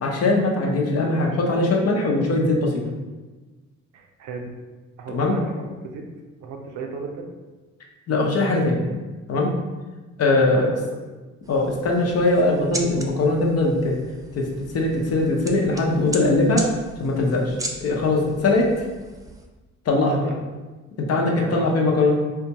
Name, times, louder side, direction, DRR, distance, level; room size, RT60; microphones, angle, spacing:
voice 1, 0.0-2.8 5.1-5.3 8.1-8.8 9.3-9.5 10.2-10.7 11.5-14.0 14.3-14.5 14.7-16.6 17.0-18.7 19.9-20.3 21.0-22.1, left 2 dB, 55° left, 0 dB, 0.7 m, -21 dB
voice 2, 3.9-4.5 5.0-6.0 6.4-7.3 10.3-10.7 20.2-20.4 21.3-21.7, right 4 dB, 85° right, 2 dB, 0.6 m, -35 dB
sound 1, 11.4-19.5, right 2 dB, 10° right, 0.3 m, -38 dB
3.7 x 2.3 x 2.8 m, 1.3 s
cardioid pair, 90°, 30 cm